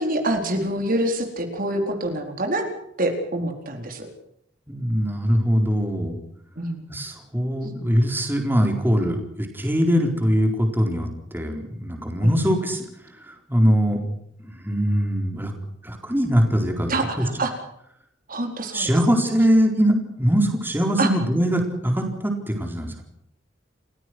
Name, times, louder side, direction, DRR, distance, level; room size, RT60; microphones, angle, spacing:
voice 1, 0.0-2.6 3.0-4.1 6.6-7.1 12.2-12.4 16.9-17.5 18.3-18.8 21.0-21.1, right 1 dB, 50° right, 4 dB, 4.4 m, -26 dB
voice 2, 4.7-6.1 6.9-14.0 14.4-15.5 15.8-17.2 18.7-23.0, equal, 10° right, 3 dB, 4.2 m, -22 dB
29.5 x 16.5 x 6.3 m, 0.74 s
head